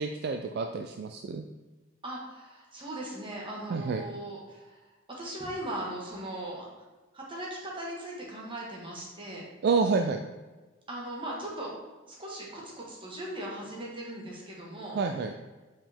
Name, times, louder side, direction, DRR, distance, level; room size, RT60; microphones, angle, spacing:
voice 1, 0.0-1.4 3.7-4.0 9.6-10.2 15.0-15.3, right 4 dB, 50° right, 5 dB, 0.3 m, -28 dB
voice 2, 2.0-4.8 5.1-6.7 7.1-9.4 10.9-11.7 12.1-15.0, right 1 dB, 25° right, -4 dB, 1.5 m, -39 dB
5.5 x 4.9 x 3.5 m, 1.2 s
head